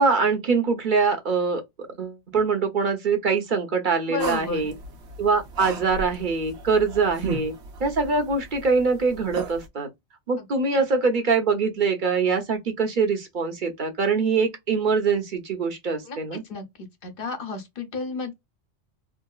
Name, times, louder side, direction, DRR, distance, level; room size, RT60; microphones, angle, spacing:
voice 1, 0.0-1.6 2.0-4.7 5.2-7.5 7.8-9.9 10.3-16.4, right 4 dB, 45° right, 1.0 m, -23 dB
voice 2, 4.1-4.7 10.7-10.8 16.0-16.7 17.0-18.3, left 4 dB, 50° left, 1.1 m, -32 dB
sound 1, 4.2-9.7, right 4 dB, 70° right, 1.2 m, -36 dB
3.8 x 2.0 x 2.3 m
omnidirectional pair, 1.2 m